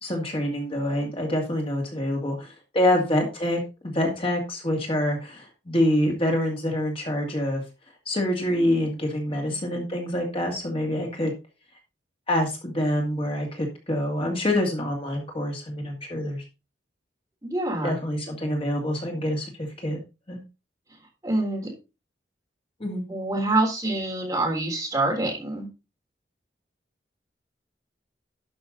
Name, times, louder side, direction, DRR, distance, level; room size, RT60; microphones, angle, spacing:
voice 1, 0.0-7.6 8.1-11.3 12.3-16.4 17.8-20.0 20.3-20.4 22.8-23.0, left 1 dB, 35° left, 1 dB, 2.3 m, -26 dB
voice 2, 17.4-18.0 21.2-21.7 23.1-25.7, right 2 dB, 20° right, 0 dB, 3.7 m, -26 dB
12.0 x 6.3 x 3.9 m, 0.28 s
head